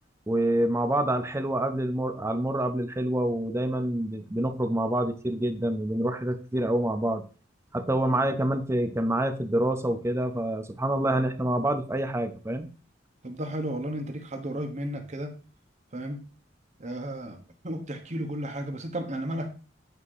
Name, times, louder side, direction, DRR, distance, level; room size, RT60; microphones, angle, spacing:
voice 1, 0.3-7.2 7.7-12.7, right 1 dB, 15° right, 7 dB, 0.6 m, -27 dB
voice 2, 13.2-15.3 15.9-16.2 16.8-19.5, right 1 dB, 40° right, 4 dB, 1.1 m, -33 dB
8.2 x 2.9 x 4.7 m, 0.37 s
head